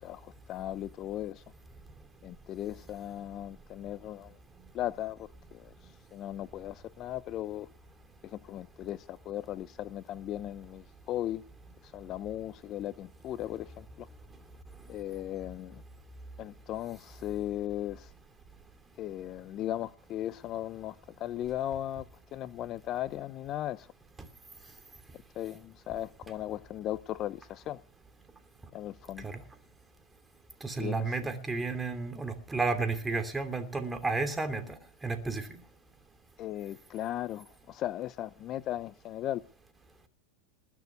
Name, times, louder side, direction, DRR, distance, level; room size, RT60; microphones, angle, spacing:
voice 1, 0.0-1.4 2.2-4.4 4.7-7.7 8.2-11.4 11.8-14.1 14.9-15.8 16.4-18.1 19.0-23.9 25.3-27.8 28.7-29.3 30.8-31.1 36.4-39.4, left 12 dB, 40° left, 0.7 m, -37 dB
voice 2, 30.6-35.6, right 3 dB, 10° right, 2.7 m, -32 dB
20.5 x 6.8 x 8.4 m
hypercardioid pair, 120°, 0 cm